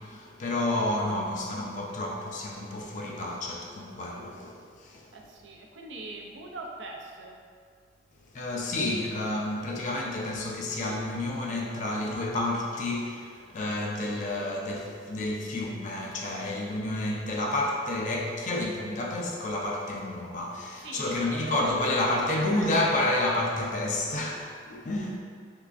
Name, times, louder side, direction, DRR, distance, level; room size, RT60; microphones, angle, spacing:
voice 1, 0.0-5.1 8.3-25.2, left 1 dB, 45° left, -1 dB, 0.4 m, -30 dB
voice 2, 0.7-1.6 5.1-7.4 18.6-18.9 20.8-23.1, right 2 dB, 80° right, 1 dB, 0.5 m, -42 dB
3.7 x 3.2 x 2.3 m, 2.1 s
head